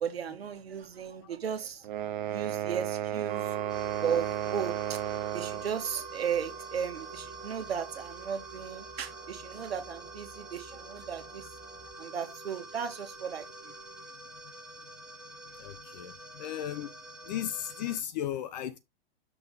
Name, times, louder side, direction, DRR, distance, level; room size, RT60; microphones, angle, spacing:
voice 1, 0.0-1.9 2.3-3.5 4.0-5.0 5.3-11.5 12.0-13.7, right 7 dB, 75° right, 1.3 m, -35 dB
sound 1, 1.8-5.7, right 11 dB, 55° right, 0.6 m, -33 dB
sound 2, 3.3-14.1, right 8 dB, 25° right, 1.0 m, -45 dB
sound 3, 3.7-18.0, right 1 dB, ahead, 1.3 m, -48 dB
voice 2, 15.6-16.9 17.3-18.8, left 11 dB, 45° left, 0.6 m, -35 dB
6.1 x 3.6 x 5.0 m
hypercardioid pair, 115°, 30 cm